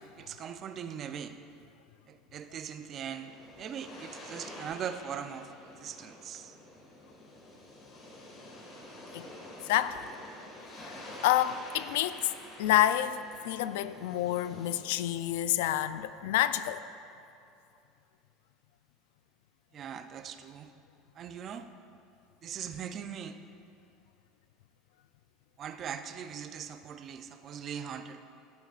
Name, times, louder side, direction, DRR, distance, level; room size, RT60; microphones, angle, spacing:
voice 1, 0.2-1.4 2.1-5.5 5.8-6.5 19.7-20.7 21.2-21.7 22.4-23.4 25.6-28.2, right 8 dB, 30° right, 9 dB, 0.4 m, -40 dB
sound 1, 2.7-15.0, left 1 dB, 25° left, 1.8 m, -49 dB
voice 2, 9.7-10.0 10.8-10.9 11.2-12.3 12.6-13.2 13.4-16.8, left 13 dB, 85° left, 13 dB, 0.3 m, -28 dB
13.0 x 11.5 x 2.4 m, 2.5 s
cardioid pair, 170°, 0 cm